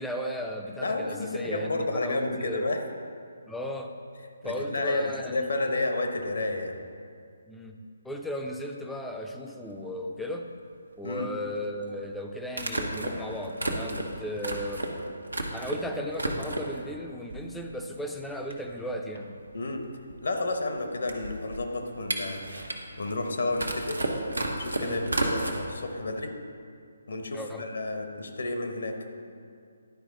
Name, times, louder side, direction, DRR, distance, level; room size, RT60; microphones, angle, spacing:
voice 1, 0.0-2.7 3.5-3.9 4.4-5.9 7.5-7.8 8.0-10.5 11.0-14.9 15.5-19.4 24.8-25.1 27.3-27.7, equal, 5° left, 2 dB, 0.5 m, -36 dB
voice 2, 0.8-2.8 4.4-6.8 11.0-11.3 19.5-19.8 20.2-22.7 23.0-24.0 24.5-26.3 27.1-29.0, left 2 dB, 65° left, 4 dB, 0.9 m, -31 dB
sound 1, 9.7-9.8 11.6-11.7 12.5-15.8 16.1-16.8 17.3-17.9 18.2-18.3 18.5-25.5, right 1 dB, 90° right, 1.0 m, -32 dB
11.0 x 4.7 x 3.8 m, 2.3 s
figure-of-eight pair, 145°, 0 cm